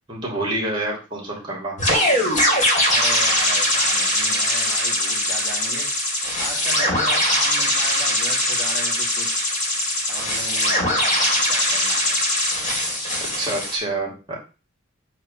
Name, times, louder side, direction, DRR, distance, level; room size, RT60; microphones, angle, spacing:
voice 1, 0.1-1.8 13.4-14.3, right 2 dB, 25° right, -2 dB, 2.5 m, -27 dB
sound 1, 1.8-13.8, left 1 dB, 35° left, 2.3 m, -21 dB
voice 2, 2.9-5.9 6.4-9.5 10.1-12.2, right 1 dB, 5° left, -6 dB, 1.9 m, -36 dB
8.0 x 3.2 x 5.7 m, 0.33 s
head